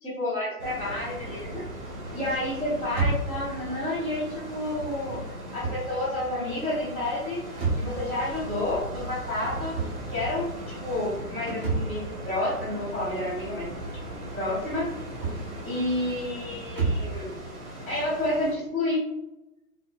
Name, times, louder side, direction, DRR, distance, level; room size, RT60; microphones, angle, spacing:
voice 1, 0.0-1.7 2.1-5.2 5.5-7.4 7.7-9.7 10.1-13.7 14.1-14.9 15.6-17.3 17.9-19.0, left 1 dB, 5° right, -15 dB, 0.4 m, -30 dB
sound 1, 0.6-18.6, right 1 dB, 75° right, 1.3 m, -39 dB
sound 2, 2.9-17.2, right 3 dB, 40° right, 1.3 m, -34 dB
3.9 x 2.1 x 2.5 m, 0.94 s
hypercardioid pair, 125°, 46 cm